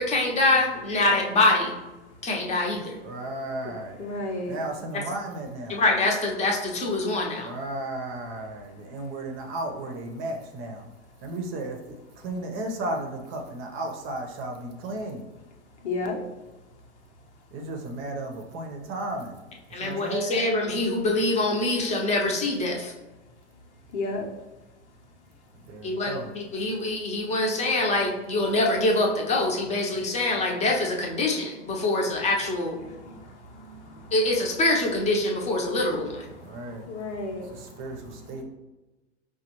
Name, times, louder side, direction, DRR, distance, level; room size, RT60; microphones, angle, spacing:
voice 1, 0.0-1.7 2.2-3.0 5.7-7.5 19.7-22.9 25.8-32.8 34.1-36.3, left 2 dB, 20° left, 0 dB, 0.8 m, -25 dB
voice 2, 2.9-4.1 4.4-5.8 7.4-10.9 11.2-15.2 17.5-19.4 19.8-20.4 25.5-26.3 36.3-36.9 37.4-38.4, right 2 dB, 35° right, 3 dB, 0.7 m, -34 dB
voice 3, 4.0-4.5 15.8-16.2 23.9-24.3 33.0-33.2 33.7-33.8 36.9-37.5, left 3 dB, 80° left, 0 dB, 1.0 m, -31 dB
4.9 x 2.3 x 3.0 m, 1.1 s
hypercardioid pair, 100°, 34 cm